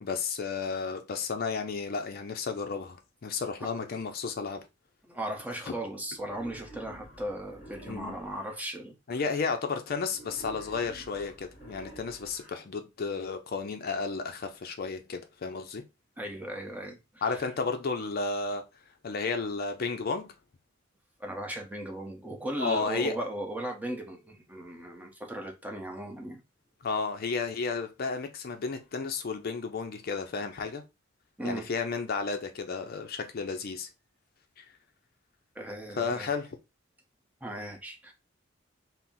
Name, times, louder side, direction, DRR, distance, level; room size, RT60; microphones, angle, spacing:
voice 1, 0.0-4.7 7.9-8.2 9.1-15.8 17.2-18.6 19.0-20.3 22.6-23.2 26.8-30.8 31.4-33.9 34.6-34.7 36.0-36.6, left 4 dB, 50° left, 0.4 m, -32 dB
voice 2, 5.1-9.3 16.2-17.5 21.2-26.4 31.4-31.7 35.6-36.3 37.4-38.1, right 1 dB, 10° right, 0.8 m, -37 dB
Wild animals, 6.1-8.6 10.1-12.6, right 1 dB, 30° left, 2.5 m, -49 dB
4.3 x 2.0 x 3.6 m
head